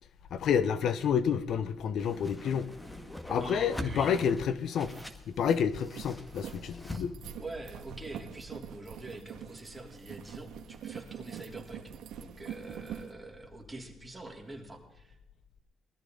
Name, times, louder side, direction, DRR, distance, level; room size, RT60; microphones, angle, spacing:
voice 1, 0.3-2.7 3.3-4.9 5.4-7.1, left 7 dB, 70° left, 0.7 m, -29 dB
Whoosh swoosh swish, 2.0-7.0, equal, 10° left, 1.8 m, -43 dB
voice 2, 3.3-4.2 6.8-7.0 7.3-15.2, right 2 dB, 10° right, 3.3 m, -45 dB
sound 1, 4.7-13.1, right 8 dB, 80° right, 1.6 m, -45 dB
20.5 x 13.5 x 3.8 m
cardioid pair, 90°, 0 cm